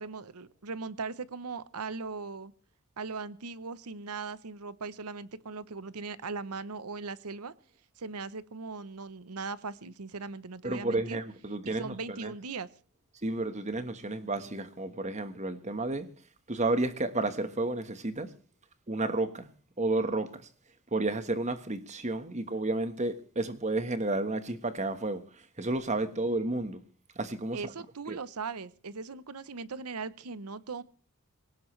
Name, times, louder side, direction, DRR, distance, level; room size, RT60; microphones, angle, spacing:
voice 1, 0.0-2.5 3.0-7.5 8.0-11.2 11.6-12.7 27.5-30.8, right 4 dB, 80° right, 0.9 m, -39 dB
voice 2, 10.6-12.3 13.2-16.1 16.5-18.3 18.9-19.5 19.8-20.5 20.9-25.2 25.6-26.8 27.1-27.7 28.1-28.2, right 2 dB, 30° right, 1.4 m, -31 dB
21.0 x 18.0 x 3.3 m
head